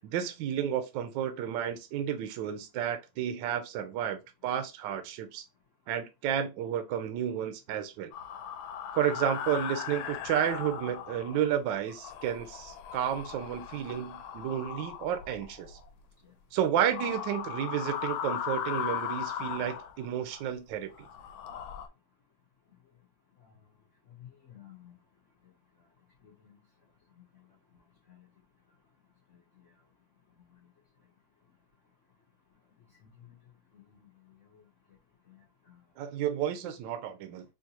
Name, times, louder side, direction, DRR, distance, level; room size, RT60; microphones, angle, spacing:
voice 1, 0.0-5.4 5.9-8.1 8.9-15.8 16.5-21.1 36.0-37.4, right 9 dB, 75° right, 1.2 m, -31 dB
sound 1, 8.1-11.6 11.9-15.9 16.8-20.4 20.9-21.9, left 9 dB, 80° left, 1.3 m, -38 dB
voice 2, 24.2-24.9 26.2-26.6 28.1-28.2 33.7-34.1 35.3-35.8, left 11 dB, 60° left, 0.8 m, -54 dB
3.8 x 2.6 x 2.7 m
omnidirectional pair, 2.2 m